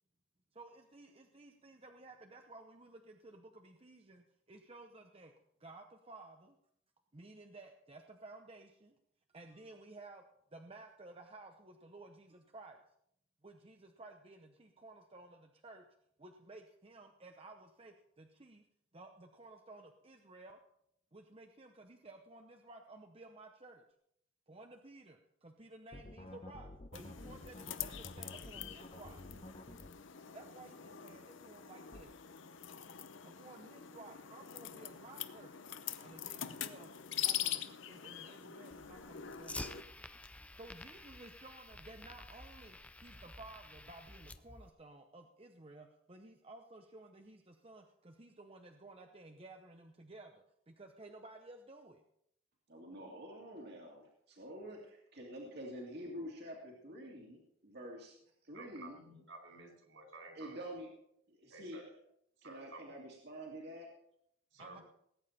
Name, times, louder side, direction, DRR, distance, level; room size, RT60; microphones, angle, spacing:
voice 1, 0.5-5.3 5.6-6.6 7.1-9.0 9.3-10.2 10.5-12.8 13.4-15.9 16.2-18.6 18.9-20.6 21.1-23.8 24.5-29.2 30.3-32.2 33.2-35.6 36.0-40.1 40.5-52.0 64.6-64.8, right 2 dB, 30° right, 4 dB, 0.8 m, -55 dB
sound 1, 25.9-29.9 31.9-32.0, left 1 dB, 30° left, 0.9 m, -50 dB
sound 2, 26.9-39.8, left 11 dB, 60° left, 0.8 m, -44 dB
Fire, 38.7-44.7, left 2 dB, 5° left, 0.4 m, -50 dB
voice 2, 52.7-58.2 58.4-59.0 60.3-60.9 61.3-61.8 62.4-63.9, equal, 50° right, -1 dB, 2.4 m, -47 dB
voice 3, 58.5-60.6 61.5-61.9 62.4-62.9 64.5-64.8, right 2 dB, 70° right, 3 dB, 4.7 m, -53 dB
19.0 x 9.0 x 4.3 m, 0.72 s
head